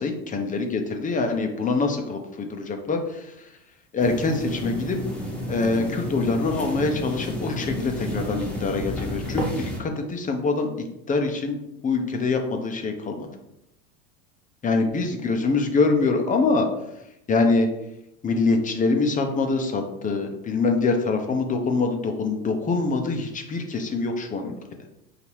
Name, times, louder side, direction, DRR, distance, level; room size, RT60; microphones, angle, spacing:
voice 1, 0.0-3.3 3.9-5.0 5.5-10.7 11.1-13.3 14.6-16.7 17.3-17.7 18.2-24.5, left 3 dB, 20° left, 4 dB, 0.6 m, -24 dB
sound 1, 4.0-9.8, equal, 5° left, 0.9 m, -31 dB
5.6 x 2.8 x 3.0 m, 0.86 s
hypercardioid pair, 100°, 44 cm